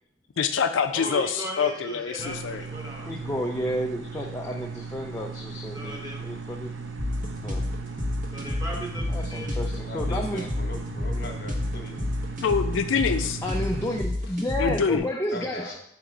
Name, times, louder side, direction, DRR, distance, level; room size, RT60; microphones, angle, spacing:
voice 1, 0.4-2.6 12.4-13.4 14.6-15.1, left 6 dB, 75° left, 8 dB, 0.4 m, -25 dB
voice 2, 0.9-3.3 5.7-6.3 8.3-9.0 9.3-9.5, right 1 dB, 20° right, -2 dB, 1.4 m, -37 dB
sound 1, 2.2-14.0, right 4 dB, 75° right, 0.7 m, -38 dB
voice 3, 3.1-6.7 7.2-7.6 9.1-10.5 13.4-15.8, left 1 dB, 15° left, 0 dB, 0.4 m, -31 dB
sound 2, 7.0-15.0, left 1 dB, 45° right, 1.3 m, -30 dB
voice 4, 9.8-12.0 15.3-15.8, left 2 dB, 55° left, 2 dB, 1.2 m, -39 dB
7.6 x 2.9 x 4.8 m, 0.72 s
head